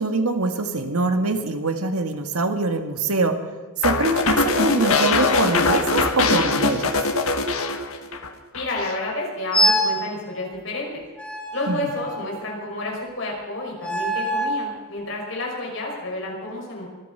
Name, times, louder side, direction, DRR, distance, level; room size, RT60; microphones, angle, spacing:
voice 1, 0.0-3.4 3.8-7.0 11.7-11.9, right 3 dB, 90° right, 7 dB, 1.7 m, -24 dB
sound 1, 3.8-8.3 8.5-9.0, left 3 dB, 75° left, 1.7 m, -21 dB
voice 2, 8.5-11.0 11.5-16.9, left 2 dB, 60° left, -2 dB, 6.0 m, -30 dB
sound 2, 9.5-10.0 11.2-12.4 13.8-14.6, equal, 5° left, 2.8 m, -24 dB
25.5 x 9.5 x 5.6 m, 1.4 s
head